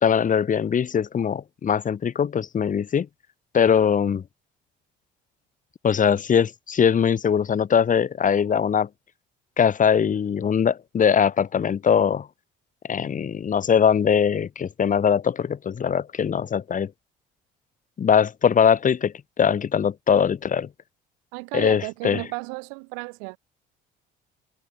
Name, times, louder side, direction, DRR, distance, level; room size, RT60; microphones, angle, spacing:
voice 1, 0.0-3.1 3.5-4.2 5.8-8.9 9.6-12.3 12.9-16.9 18.0-20.7 21.5-22.2, left 7 dB, 40° left, 2.3 m, -21 dB
voice 2, 21.3-23.4, right 40 dB or more, 85° right, 7.4 m, -33 dB
supercardioid pair, 80°, 21 cm